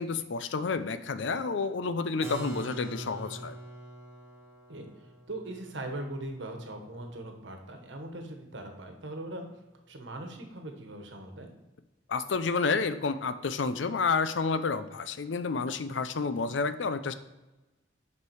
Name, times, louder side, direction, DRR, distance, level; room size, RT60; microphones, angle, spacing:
voice 1, 0.0-3.6 12.1-17.1, left 4 dB, 80° left, 12 dB, 0.5 m, -30 dB
Keyboard (musical), 2.2-7.8, right 1 dB, 15° right, 1.4 m, -44 dB
voice 2, 5.3-9.5 9.9-11.5, right 1 dB, 80° right, 4 dB, 1.3 m, -40 dB
6.8 x 5.4 x 4.7 m, 1.1 s
head